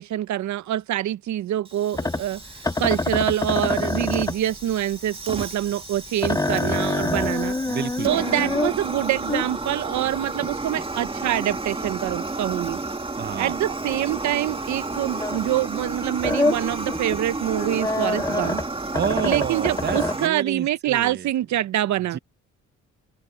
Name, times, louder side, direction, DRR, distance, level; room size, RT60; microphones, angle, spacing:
voice 1, 0.0-7.6 8.0-12.8 13.4-18.6 19.2-22.2, right 13 dB, 70° right, 0.7 m, -25 dB
Fire, 1.6-20.3, right 3 dB, 20° right, 2.3 m, -32 dB
sound 1, 1.9-15.5 15.9-20.1, left 2 dB, 10° left, 0.9 m, -27 dB
voice 2, 7.6-8.6 13.2-13.8 18.9-21.3 22.1-22.2, right 8 dB, 35° right, 0.7 m, -30 dB
open air
cardioid pair, 90°, 30 cm